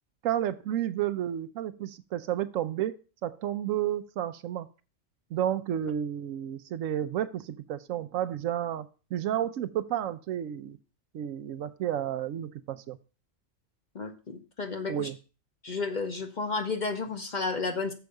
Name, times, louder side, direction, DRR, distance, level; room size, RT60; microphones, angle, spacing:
voice 1, 0.2-3.0 3.2-4.7 5.3-8.9 9.1-10.8 11.1-13.0 14.9-15.1, right 11 dB, 80° right, 12 dB, 1.0 m, -31 dB
voice 2, 13.9-15.1 15.6-17.9, left 4 dB, 40° left, 7 dB, 0.8 m, -32 dB
7.0 x 4.7 x 6.4 m, 0.34 s
omnidirectional pair, 1.4 m